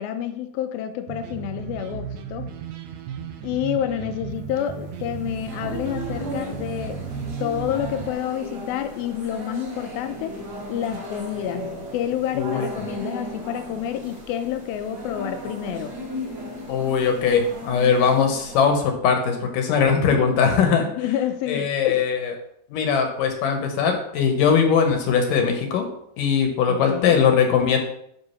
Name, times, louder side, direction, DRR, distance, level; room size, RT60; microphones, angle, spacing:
voice 1, 0.0-2.5 3.4-7.0 7.4-10.4 10.7-16.0 20.0-20.2 20.8-22.1 26.7-27.2, left 10 dB, 85° left, 8 dB, 2.5 m, -29 dB
sound 1, 1.1-8.1, right 6 dB, 80° right, 1.7 m, -34 dB
sound 2, 4.6-18.6, equal, 45° right, 2.2 m, -36 dB
voice 2, 12.3-12.7 16.7-20.9 21.5-22.3 22.7-25.9 26.2-27.8, left 6 dB, 70° left, 4 dB, 2.4 m, -20 dB
9.7 x 3.8 x 5.6 m, 0.72 s
omnidirectional pair, 4.3 m